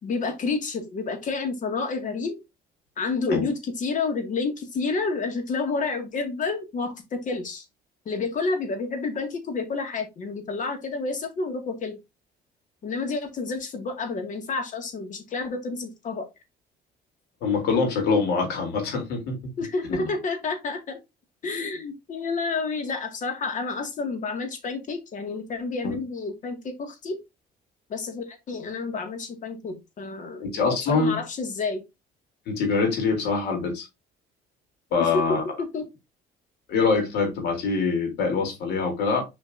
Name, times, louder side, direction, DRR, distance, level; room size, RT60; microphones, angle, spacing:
voice 1, 0.0-2.4 3.0-7.6 8.1-12.0 12.8-16.3 19.6-21.0 21.4-27.2 27.9-31.8 35.0-35.1 35.7-35.8, left 4 dB, 50° left, 2.2 m, -30 dB
voice 2, 17.4-19.5 19.9-20.1 25.8-26.0 30.4-31.2 32.5-33.9 34.9-35.4 36.7-39.2, left 4 dB, 75° left, 3.5 m, -24 dB
7.2 x 5.0 x 2.7 m
cardioid pair, 110°, 17 cm